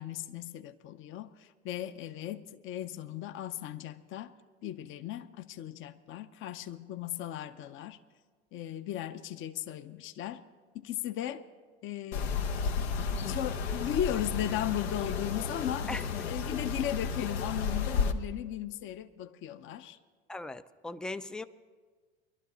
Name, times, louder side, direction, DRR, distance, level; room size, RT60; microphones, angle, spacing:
voice 1, 0.0-4.3 4.6-8.0 8.5-10.4 10.7-11.4 11.8-12.3 12.8-12.9 13.3-15.9 16.2-20.0, left 11 dB, 40° left, 0.6 m, -36 dB
sound 1, 12.1-18.1, left 5 dB, 85° left, 0.9 m, -32 dB
voice 2, 20.3-21.4, left 2 dB, 5° left, 0.3 m, -38 dB
21.0 x 12.0 x 4.0 m
hypercardioid pair, 90°, 31 cm